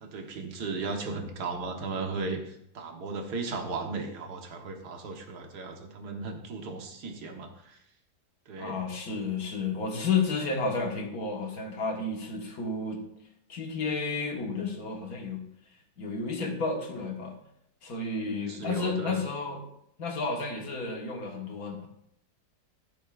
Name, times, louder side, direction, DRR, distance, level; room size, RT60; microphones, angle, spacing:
voice 1, 0.0-7.8 8.5-8.8 18.3-19.2, right 3 dB, 75° right, 4 dB, 1.7 m, -36 dB
voice 2, 8.6-13.0 13.5-15.4 16.0-17.3 17.8-19.6 20.0-21.9, left 4 dB, 60° left, 1 dB, 1.9 m, -31 dB
13.5 x 7.2 x 2.5 m, 0.76 s
omnidirectional pair, 1.8 m